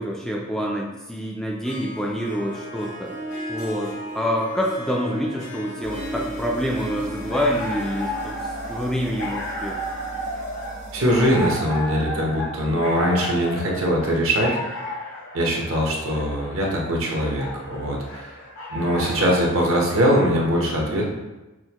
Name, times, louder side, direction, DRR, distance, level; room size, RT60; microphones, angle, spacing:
voice 1, 0.0-3.1 3.5-9.8, equal, ahead, -3 dB, 0.3 m, -27 dB
Harp, 1.4-10.4, right 1 dB, 90° left, 1.2 m, -37 dB
sound 1, 5.8-11.6, right 1 dB, 35° right, 0.6 m, -39 dB
sound 2, 7.1-19.5, equal, 65° left, 0.9 m, -33 dB
voice 2, 10.9-14.8 15.3-18.4 18.7-21.0, equal, 70° right, -2 dB, 0.9 m, -22 dB
6.2 x 2.1 x 2.9 m, 1.1 s
head